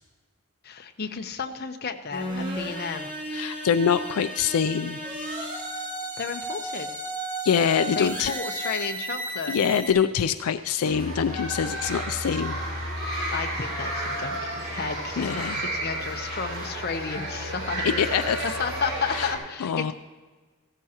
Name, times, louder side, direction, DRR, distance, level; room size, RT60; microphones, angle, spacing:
voice 1, 0.6-3.1 6.2-7.0 8.0-9.6 13.3-19.9, left 5 dB, 45° left, 6 dB, 0.8 m, -32 dB
sound 1, 2.1-9.9, right 1 dB, 35° right, 2.6 m, -34 dB
voice 2, 3.3-5.0 7.4-8.3 9.5-12.6 15.2-15.6 18.0-18.4 19.1-19.3 19.6-19.9, left 7 dB, 85° left, 11 dB, 0.4 m, -24 dB
sound 2, 10.8-19.4, right 1 dB, 65° right, 3.5 m, -32 dB
15.5 x 13.5 x 2.9 m, 1.4 s
head